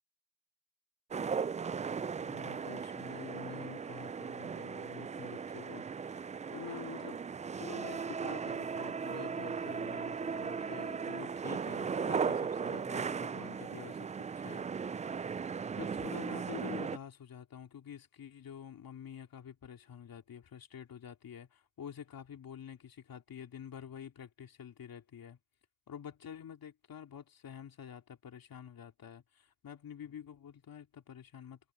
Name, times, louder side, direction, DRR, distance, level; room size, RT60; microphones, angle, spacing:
sound 1, 1.1-17.0, right 6 dB, 20° right, 0.3 m, -37 dB
voice 1, 2.2-7.2 7.6-14.1 14.4-15.4 15.7-25.4 25.9-31.7, left 8 dB, 60° left, 3.0 m, -48 dB
supercardioid pair, 65°, 39 cm